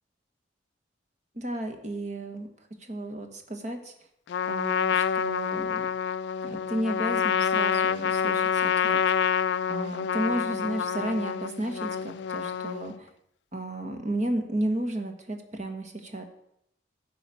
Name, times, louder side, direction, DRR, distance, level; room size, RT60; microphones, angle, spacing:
voice 1, 1.3-3.9 4.5-5.9 6.4-9.0 9.7-13.1 13.5-16.2, right 1 dB, 40° right, 5 dB, 1.4 m, -33 dB
Trumpet, 4.3-13.0, left 7 dB, 65° left, 0.3 m, -27 dB
12.0 x 5.0 x 8.4 m, 0.78 s
head